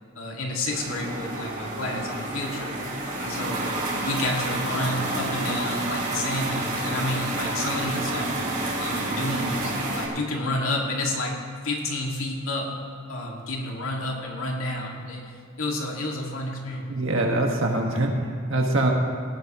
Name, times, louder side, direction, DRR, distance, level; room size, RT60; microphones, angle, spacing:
voice 1, 0.2-2.7 3.2-3.7 4.0-8.3 8.8-11.3 11.6-12.7 13.1-15.3 15.6-16.9, left 1 dB, 90° left, -1 dB, 2.1 m, -30 dB
sound 1, 0.7-10.1, right 2 dB, 40° right, 2.9 m, -29 dB
voice 2, 16.9-18.9, right 2 dB, 70° right, 1 dB, 1.6 m, -24 dB
18.0 x 12.0 x 3.0 m, 2.2 s
head